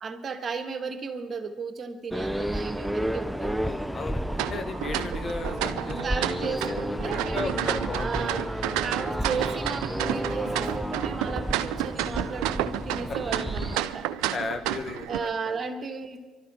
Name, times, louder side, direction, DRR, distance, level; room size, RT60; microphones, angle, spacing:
voice 1, 0.0-3.6 6.0-7.6 8.0-8.5 8.8-14.1 15.1-16.2, right 5 dB, 45° right, 6 dB, 1.6 m, -34 dB
sound 1, 2.1-13.8, equal, 5° right, 0.6 m, -32 dB
voice 2, 3.6-6.0 6.4-8.4 13.1-13.2 14.3-15.6, left 3 dB, 45° left, 7 dB, 1.5 m, -36 dB
sound 2, 4.3-15.2, right 13 dB, 80° right, 0.5 m, -31 dB
23.5 x 12.5 x 4.4 m, 1.3 s
hypercardioid pair, 60°, 0 cm